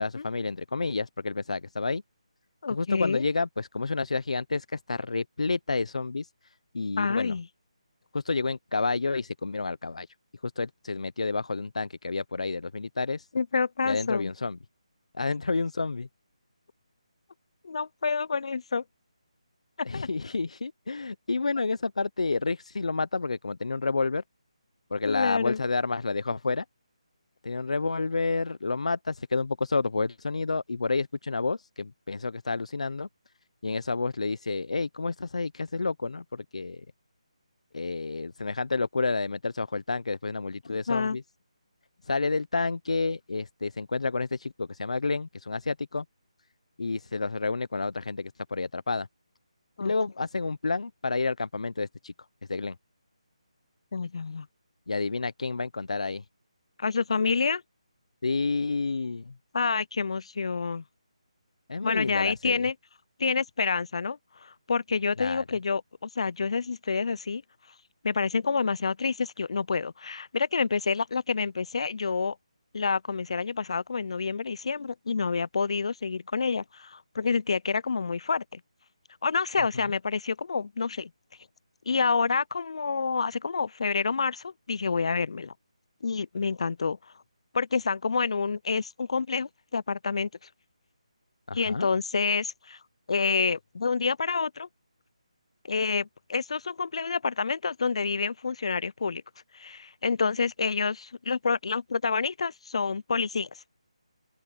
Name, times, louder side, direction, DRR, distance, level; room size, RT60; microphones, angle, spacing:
voice 1, 0.0-2.0 2.7-7.4 8.1-10.1 10.4-13.3 13.9-14.6 15.1-16.1 19.8-24.2 24.9-26.6 27.4-33.1 33.6-36.9 37.7-41.2 42.0-46.0 46.8-49.1 49.8-52.1 52.5-52.8 54.9-56.2 58.2-59.3 61.7-62.7 65.2-65.4 79.7-79.9 91.5-91.9, left 3 dB, 75° left, 0.8 m, -30 dB
voice 2, 2.6-3.2 7.0-7.4 13.3-14.3 17.6-18.8 19.8-20.1 25.1-25.6 40.9-41.2 49.8-49.9 53.9-54.5 56.8-57.6 59.5-60.8 61.8-62.7 63.2-67.4 68.0-72.4 72.7-78.6 79.2-81.1 81.9-85.5 86.0-87.0 87.5-90.3 91.5-92.8 93.1-94.7 95.6-99.2 99.5-103.5, left 5 dB, 55° left, 0.4 m, -28 dB
open air
figure-of-eight pair, 165°, 4 cm